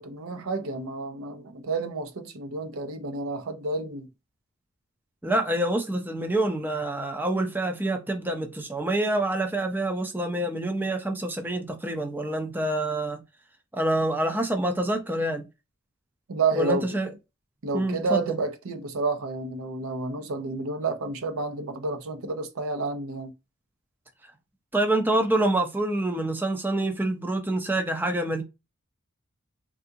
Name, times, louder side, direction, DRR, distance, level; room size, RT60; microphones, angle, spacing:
voice 1, 0.0-4.1 16.3-16.9 17.6-23.3, right 3 dB, 80° right, 0.6 m, -30 dB
voice 2, 5.2-13.2 13.7-15.5 16.5-17.1 17.7-18.2 24.7-28.4, right 1 dB, 10° right, 0.4 m, -26 dB
3.5 x 2.5 x 2.7 m
head